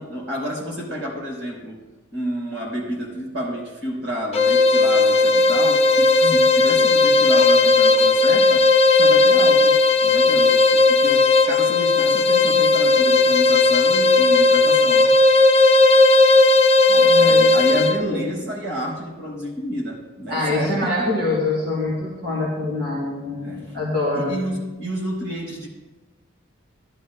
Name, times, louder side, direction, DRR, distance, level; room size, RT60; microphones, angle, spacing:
voice 1, 0.0-1.8 2.1-15.1 17.1-20.9 23.4-23.8 24.1-25.7, equal, 70° right, -2 dB, 4.4 m, -30 dB
sound 1, 4.3-18.0, left 3 dB, 30° left, 0.5 m, -15 dB
voice 2, 16.9-18.3 20.3-24.5, left 2 dB, 55° right, -7 dB, 3.5 m, -25 dB
19.0 x 12.0 x 2.2 m, 1.2 s
head